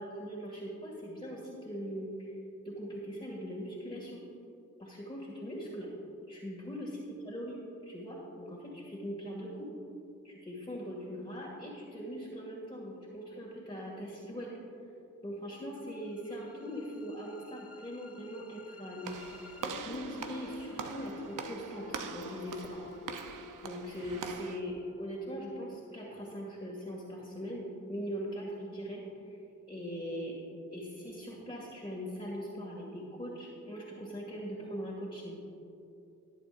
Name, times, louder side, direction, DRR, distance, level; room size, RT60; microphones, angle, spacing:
voice 1, 0.0-2.4 2.6-4.2 4.8-5.9 6.3-7.6 7.8-9.7 10.2-14.5 15.2-19.2 19.8-22.8 23.6-29.4 29.7-30.3 30.7-35.4, equal, 15° left, -5 dB, 2.2 m, -41 dB
sound 1, 15.8-27.8, left 3 dB, 50° left, 0.9 m, -51 dB
Walk footsteps / Slam, 19.0-24.6, right 6 dB, 85° right, 0.8 m, -43 dB
19.5 x 8.0 x 2.6 m, 2.7 s
cardioid pair, 85°, 31 cm